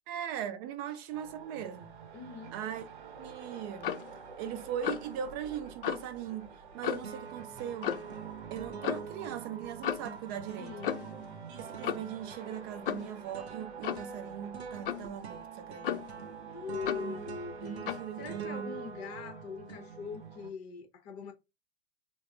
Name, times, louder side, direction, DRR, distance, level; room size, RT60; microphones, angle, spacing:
voice 1, 0.1-1.9 2.5-2.8 3.2-3.9 4.4-6.5 6.7-8.0 8.5-10.7 11.5-16.1 17.0-17.2 17.6-18.8, right 9 dB, 25° right, 0.4 m, -39 dB
sound 1, 1.1-20.5, right 6 dB, 50° right, 0.7 m, -49 dB
voice 2, 2.1-2.6 10.6-11.1 16.5-17.9 18.2-21.3, left 5 dB, 40° left, 0.8 m, -42 dB
Clock, 3.8-4.1 4.8-5.1 5.8-6.1 6.8-7.2 7.8-8.1 8.8-9.1 9.8-10.2 10.8-11.2 11.8-12.2 12.9-13.1 13.8-14.1 14.9-15.1 15.8-16.2 16.9-17.1 17.9-18.1, left 9 dB, 60° left, 0.4 m, -34 dB
sound 2, 6.2-6.7 7.0-20.4, right 6 dB, 85° right, 0.6 m, -46 dB
3.6 x 2.0 x 3.1 m
figure-of-eight pair, 115°, 32 cm